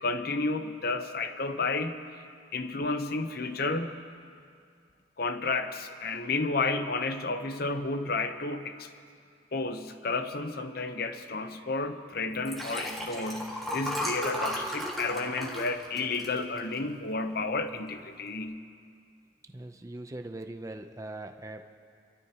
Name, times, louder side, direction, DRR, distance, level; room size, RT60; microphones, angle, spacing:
voice 1, 0.0-2.0 2.5-4.0 5.2-8.9 9.5-18.7, left 3 dB, 55° left, 8 dB, 0.8 m, -31 dB
Liquid, 12.3-17.0 17.5-17.7 18.0-18.1, equal, ahead, 1.8 m, -35 dB
voice 2, 19.5-21.7, right 2 dB, 15° right, 6 dB, 0.6 m, -41 dB
26.5 x 13.5 x 2.9 m, 2.3 s
head